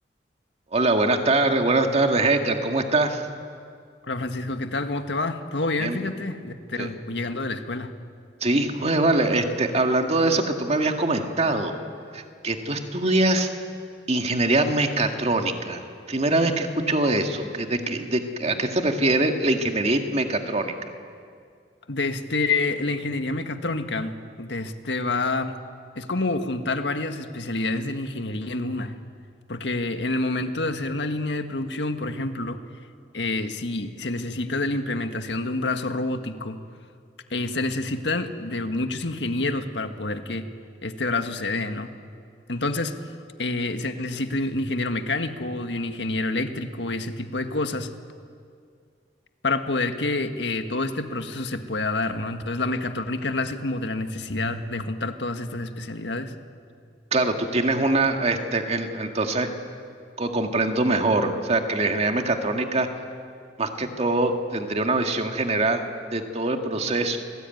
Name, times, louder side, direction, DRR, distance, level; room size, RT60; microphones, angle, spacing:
voice 1, 0.7-3.2 5.8-6.0 6.8-6.9 8.4-11.7 12.1-13.5 14.1-15.8 16.1-20.7 57.1-59.5 60.2-62.9 63.6-65.8 66.1-67.2, right 2 dB, 40° right, 4 dB, 2.1 m, -23 dB
voice 2, 4.1-7.9 21.9-25.5 25.9-28.9 29.5-32.6 33.1-36.6 37.3-40.5 40.8-41.9 42.5-43.1 43.4-47.9 49.4-56.3, left 2 dB, 90° left, 7 dB, 1.7 m, -28 dB
28.5 x 19.5 x 9.3 m, 2.2 s
head